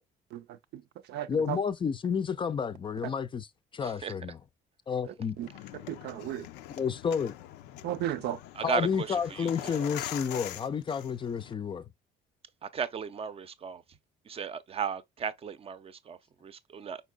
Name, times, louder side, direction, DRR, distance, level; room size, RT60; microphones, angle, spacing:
voice 1, 0.3-0.8 1.1-1.6 3.0-3.1 5.0-5.5 5.9-6.5 7.8-8.4, right 12 dB, 75° right, 0.5 m, -35 dB
voice 2, 1.3-3.5 3.7-4.4 4.9-5.4 6.8-7.4 8.6-11.8, left 6 dB, 30° left, 0.5 m, -30 dB
sound 1, 5.4-11.5, left 13 dB, 90° left, 0.5 m, -43 dB
voice 3, 8.7-9.1 9.4-9.5 12.7-13.8 14.3-17.0, right 6 dB, 35° right, 0.6 m, -35 dB
5.2 x 4.5 x 2.2 m
cardioid pair, 110°, 17 cm